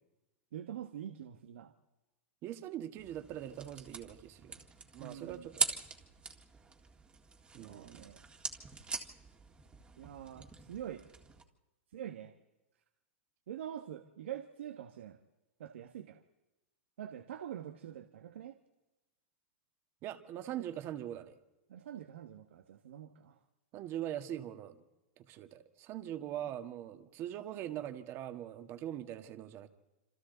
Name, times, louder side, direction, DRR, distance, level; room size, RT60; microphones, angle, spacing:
voice 1, 0.5-1.7 5.0-5.5 7.6-8.2 10.0-11.1 11.9-12.3 13.5-15.2 15.6-16.2 17.0-18.6 21.7-23.4 26.4-26.5, right 10 dB, 80° right, 7 dB, 1.4 m, -45 dB
voice 2, 2.4-4.6 4.9-5.7 7.5-8.1 20.0-21.4 23.7-24.8 25.2-29.7, right 11 dB, 40° right, 8 dB, 1.8 m, -42 dB
sound 1, 3.0-11.4, right 5 dB, 15° right, 1.9 m, -42 dB
27.0 x 26.5 x 4.0 m, 1.0 s
hypercardioid pair, 130°, 6 cm